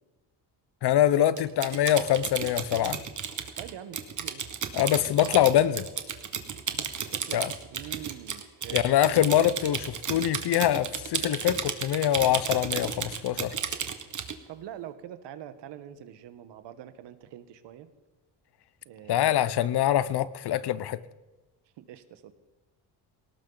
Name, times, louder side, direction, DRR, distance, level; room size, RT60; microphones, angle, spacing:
voice 1, 0.8-3.0 4.7-5.8 7.3-7.5 8.7-13.5 19.1-21.0, left 11 dB, 70° left, 16 dB, 0.9 m, -24 dB
Typing, 1.4-14.4, right 7 dB, 45° right, 1.5 m, -33 dB
voice 2, 3.5-4.5 5.3-5.5 6.7-8.8 12.2-12.4 14.5-17.9 18.8-19.9 21.8-22.3, right 11 dB, 90° right, 11 dB, 1.3 m, -44 dB
19.0 x 18.0 x 4.0 m, 1.2 s
cardioid pair, 110°, 41 cm